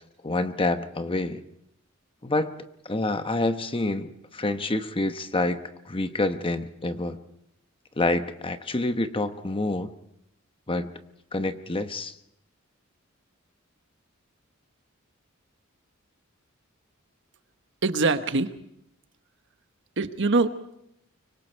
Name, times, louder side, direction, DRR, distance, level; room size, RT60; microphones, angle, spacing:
voice 1, 0.2-1.4 2.2-2.6 2.8-7.2 8.0-9.9 10.7-10.9 11.3-12.1, left 2 dB, 25° left, 9 dB, 1.0 m, -27 dB
voice 2, 17.8-18.5 20.0-20.8, right 3 dB, 60° right, 9 dB, 1.2 m, -24 dB
24.5 x 24.5 x 4.5 m, 0.78 s
head